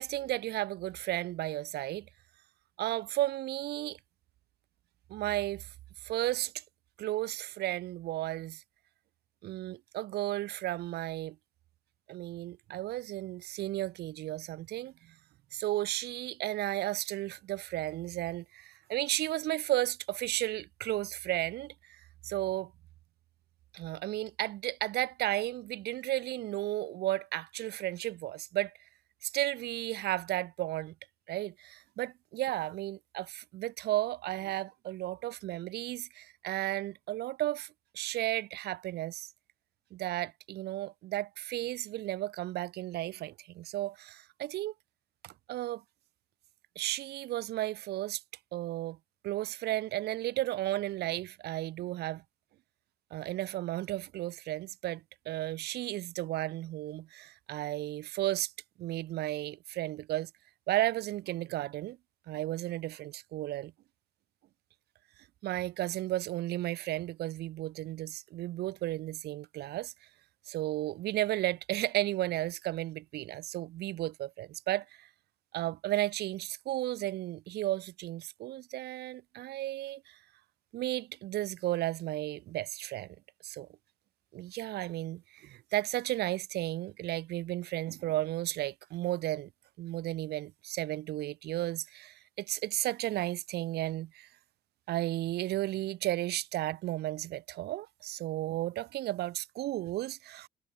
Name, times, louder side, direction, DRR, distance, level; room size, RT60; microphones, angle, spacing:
voice 1, 0.0-2.1 2.8-4.0 5.1-5.7 6.0-6.6 7.0-8.6 9.4-11.4 12.1-15.2 15.5-22.7 23.7-28.7 29.2-30.9 31.3-39.3 39.9-44.7 45.2-45.8 46.8-48.2 48.5-49.0 49.2-52.2 53.1-58.5 58.8-60.3 60.7-62.0 62.3-63.7 65.4-69.9 70.5-75.1 75.5-80.2 80.7-83.2 83.4-83.7 84.3-89.5 89.8-94.3 94.9-100.5, right 15 dB, 75° right, 2.4 m, -34 dB
cardioid pair, 110°, 17 cm